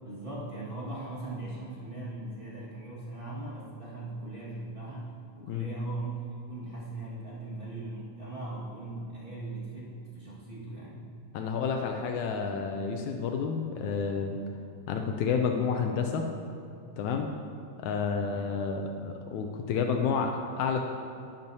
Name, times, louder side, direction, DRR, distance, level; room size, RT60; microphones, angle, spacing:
voice 1, 0.0-11.1 18.2-18.5, right 2 dB, 30° right, -7 dB, 1.0 m, -39 dB
voice 2, 11.3-14.4 14.9-16.2 17.0-17.3 17.8-20.8, left 6 dB, 80° left, 3 dB, 1.8 m, -30 dB
11.0 x 10.5 x 2.7 m, 2.5 s
omnidirectional pair, 3.8 m